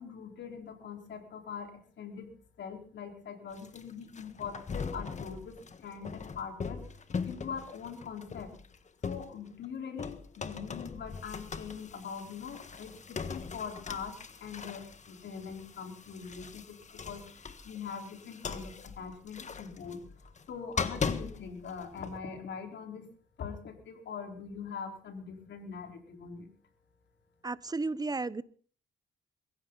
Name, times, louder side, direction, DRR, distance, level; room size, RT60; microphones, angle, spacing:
voice 1, 0.0-2.3 2.6-6.8 7.2-8.5 9.0-23.1 23.4-26.5, left 6 dB, 65° left, 4 dB, 4.4 m, -42 dB
sound 1, 3.5-9.7 10.0-22.2, left 5 dB, 35° left, 1.6 m, -40 dB
voice 2, 27.4-28.4, right 3 dB, 20° right, 18 dB, 0.9 m, -33 dB
22.5 x 16.0 x 4.0 m, 0.43 s
cardioid pair, 90°, 20 cm